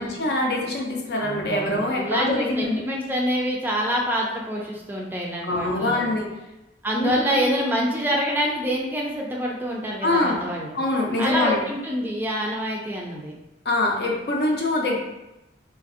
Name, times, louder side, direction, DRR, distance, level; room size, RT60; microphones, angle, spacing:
voice 1, 0.0-2.8 5.4-6.3 7.0-7.5 10.0-10.4 10.7-11.6 13.7-15.0, left 2 dB, 60° left, 0 dB, 0.6 m, -24 dB
voice 2, 1.2-6.1 6.8-10.8 11.2-13.3, equal, 10° right, -2 dB, 0.3 m, -26 dB
3.2 x 2.5 x 2.4 m, 0.96 s
head